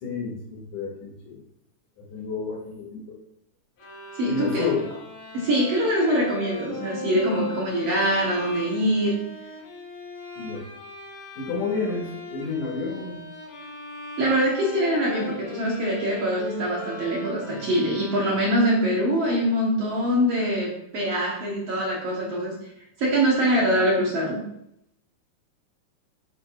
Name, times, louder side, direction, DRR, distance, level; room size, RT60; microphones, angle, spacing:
voice 1, 0.0-1.4 2.0-3.0 4.3-4.9 10.4-10.6 11.4-13.2 17.5-17.6, left 4 dB, 60° left, -2 dB, 3.3 m, -30 dB
sound 1, 3.8-18.9, left 2 dB, 75° left, 3.9 m, -38 dB
voice 2, 4.2-4.7 5.3-9.2 14.2-22.5 23.0-24.4, equal, 55° right, -4 dB, 1.8 m, -23 dB
7.7 x 7.7 x 2.5 m, 0.77 s
omnidirectional pair, 4.2 m